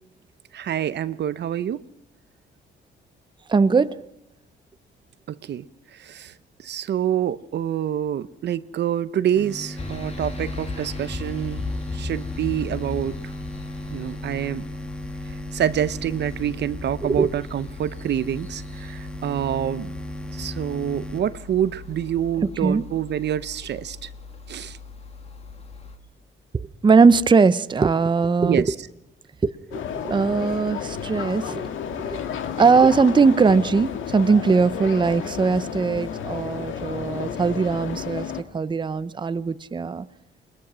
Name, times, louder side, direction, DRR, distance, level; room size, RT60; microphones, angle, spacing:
voice 1, 0.5-1.8 5.3-5.6 5.9-6.3 6.6-11.6 11.9-13.2 13.9-14.6 15.5-19.9 20.3-24.1 24.5-24.8 28.4-28.7, right 10 dB, 60° right, 0.7 m, -27 dB
voice 2, 3.5-4.0 10.8-10.9 17.0-17.3 22.4-22.9 26.5-28.7 29.4-31.7 32.0-32.2 32.6-40.1, right 4 dB, 25° right, 0.7 m, -20 dB
sound 1, 9.4-22.3, equal, 5° left, 1.5 m, -37 dB
sound 2, 9.8-26.0, left 4 dB, 30° left, 2.2 m, -37 dB
sound 3, 29.7-38.4, left 8 dB, 80° left, 1.8 m, -32 dB
21.0 x 21.0 x 6.2 m
cardioid pair, 90°, 20 cm